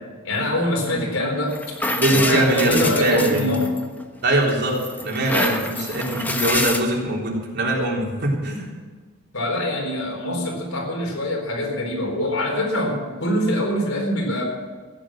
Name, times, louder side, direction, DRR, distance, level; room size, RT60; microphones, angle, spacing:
voice 1, 0.2-1.8 2.1-3.7 9.3-14.4, left 1 dB, 85° left, 1 dB, 4.0 m, -24 dB
sound 1, 1.5-4.0 4.5-6.8, left 1 dB, 10° left, 1.1 m, -26 dB
voice 2, 2.0-3.5 4.2-8.7, right 1 dB, 55° right, -2 dB, 3.7 m, -22 dB
15.5 x 10.0 x 7.6 m, 1.4 s
head